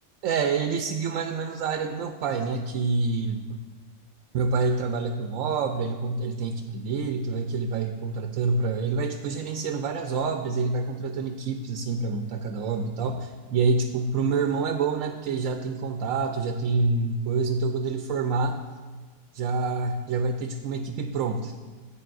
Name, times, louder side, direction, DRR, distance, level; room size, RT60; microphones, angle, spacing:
voice 1, 0.2-3.5 4.3-18.6 19.3-21.5, right 4 dB, 75° right, 5 dB, 1.0 m, -27 dB
15.0 x 8.5 x 2.5 m, 1.4 s
omnidirectional pair, 1.4 m